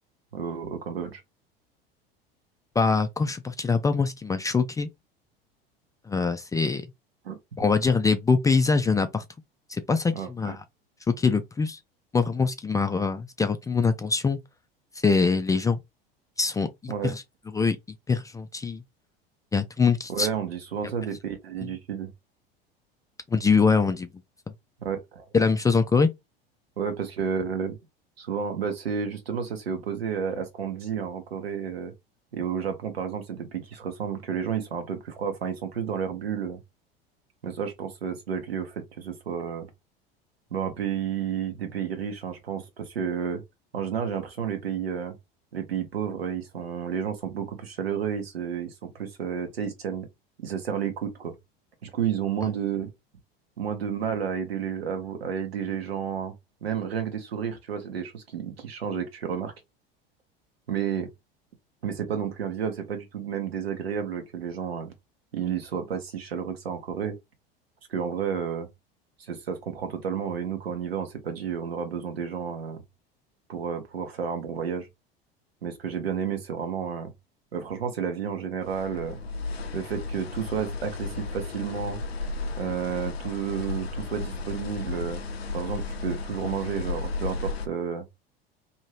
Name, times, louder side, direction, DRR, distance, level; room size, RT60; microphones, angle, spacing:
voice 1, 0.3-1.2 7.2-7.4 10.1-10.6 16.9-17.1 20.1-22.1 24.8-25.3 26.8-27.8 28.2-31.9 32.3-36.6 37.4-39.7 40.5-43.4 43.7-45.2 45.5-50.1 50.4-51.3 51.8-52.9 53.6-56.3 56.6-59.5 60.7-61.1 61.8-64.9 65.3-67.2 67.9-68.7 69.2-72.8 73.5-74.9 75.6-77.1 77.5-79.2 79.7-82.0 82.6-85.2 85.5-88.1, right 7 dB, 80° right, 1.1 m, -31 dB
voice 2, 2.8-4.9 6.1-6.9 7.6-9.3 9.7-10.6 11.2-11.8 12.1-14.4 15.0-15.8 16.4-17.2 17.5-17.8 18.1-18.8 19.5-20.3 23.3-24.1 25.3-26.1 52.4-52.5, left 4 dB, 10° left, 0.3 m, -23 dB
sound 1, 78.6-87.7, left 3 dB, 90° left, 0.5 m, -34 dB
2.7 x 2.7 x 3.0 m
hypercardioid pair, 75°, 30 cm